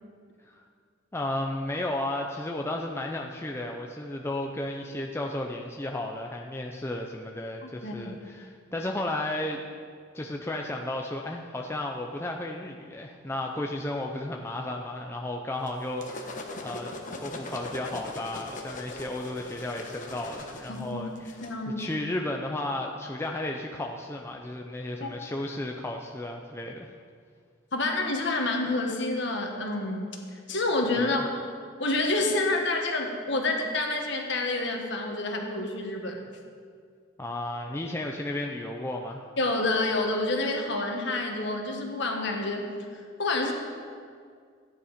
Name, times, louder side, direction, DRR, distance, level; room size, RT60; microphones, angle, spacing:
voice 1, 1.1-9.6 10.1-21.3 21.7-26.9 31.0-31.2 37.2-39.2, left 1 dB, 10° left, 1 dB, 0.5 m, -33 dB
voice 2, 7.8-8.1 20.7-21.0 21.4-21.9 25.0-25.1 27.7-31.2 31.8-36.2 39.4-43.5, left 2 dB, 55° left, 2 dB, 1.6 m, -28 dB
sound 1, 15.7-21.5, left 2 dB, 35° left, 1.1 m, -40 dB
14.0 x 9.9 x 5.1 m, 2.1 s
head